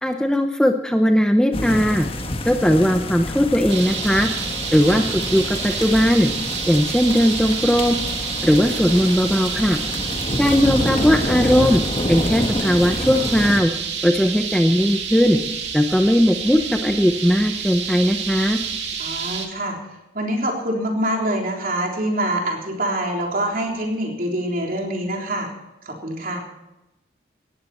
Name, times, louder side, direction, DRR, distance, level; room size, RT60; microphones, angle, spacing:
voice 1, 0.0-2.1 2.5-4.3 4.7-6.3 6.7-8.1 8.4-9.8 10.4-11.8 12.1-13.7 14.0-15.4 15.7-18.6, equal, 5° left, 5 dB, 0.8 m, -18 dB
sound 1, 1.5-13.6, left 1 dB, 30° left, 1.5 m, -27 dB
sound 2, 3.7-19.5, right 7 dB, 80° right, 2.4 m, -29 dB
voice 2, 19.0-19.8 20.1-25.5 25.8-26.4, right 1 dB, 50° right, 1 dB, 3.6 m, -25 dB
19.0 x 14.5 x 4.4 m, 0.95 s
head